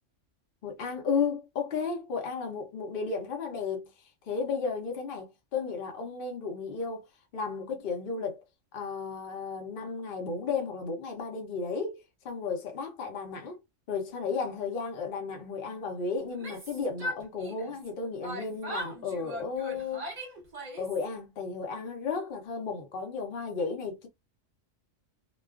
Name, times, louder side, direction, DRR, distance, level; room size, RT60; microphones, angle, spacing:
voice 1, 0.6-3.9 4.3-7.1 7.3-8.4 8.7-13.6 13.9-20.1 20.8-24.1, left 5 dB, 50° left, 0.8 m, -33 dB
Yell, 16.3-17.9 18.2-21.0, equal, 35° right, 0.8 m, -39 dB
2.3 x 2.3 x 2.3 m
omnidirectional pair, 1.3 m